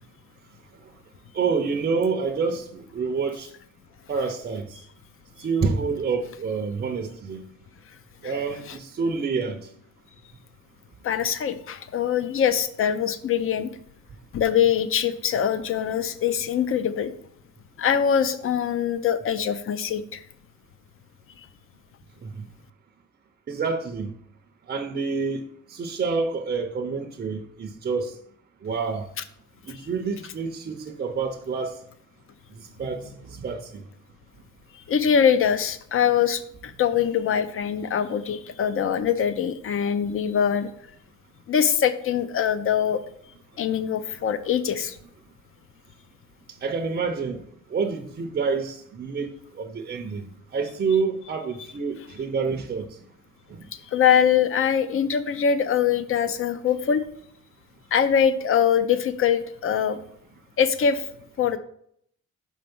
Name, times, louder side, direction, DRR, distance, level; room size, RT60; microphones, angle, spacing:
voice 1, 1.3-3.5 4.1-4.8 5.4-7.4 8.2-9.7 22.2-22.4 23.5-24.1 24.7-25.4 25.7-28.2 28.6-29.1 29.6-31.8 32.6-33.8 46.6-47.4 47.7-52.9 53.5-53.6, right 5 dB, 35° right, 0.6 m, -28 dB
voice 2, 11.0-13.7 14.3-17.1 17.8-20.2 34.9-40.7 41.5-43.0 43.6-45.0 53.9-57.0 57.9-60.0 60.6-61.0 61.4-61.6, left 8 dB, 45° left, 0.5 m, -23 dB
6.1 x 4.5 x 5.2 m
wide cardioid pair, 165°, 30 cm